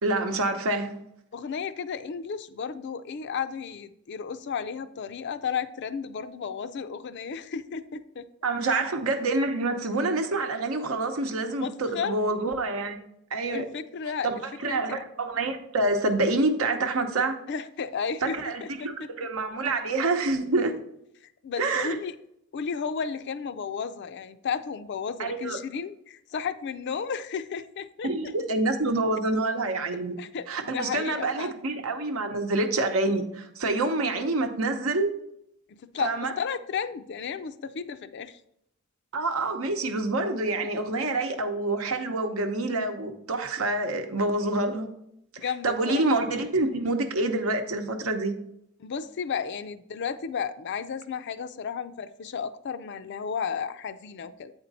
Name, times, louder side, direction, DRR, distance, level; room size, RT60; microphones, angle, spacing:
voice 1, 0.0-1.0 8.4-13.0 13.3-13.6 14.2-14.4 14.6-17.4 18.2-20.7 21.6-22.0 25.2-25.6 28.0-30.1 30.5-35.1 36.0-36.3 39.1-44.9 45.3-48.3, right 2 dB, 85° right, 6 dB, 0.8 m, -27 dB
voice 2, 1.3-8.3 8.6-8.8 11.5-12.2 13.5-14.3 14.6-15.0 17.5-19.1 21.4-22.1 22.5-28.3 30.2-31.5 35.7-38.4 45.4-46.0 48.8-54.5, left 6 dB, 55° left, 12 dB, 0.4 m, -33 dB
8.1 x 4.4 x 4.0 m, 0.77 s
head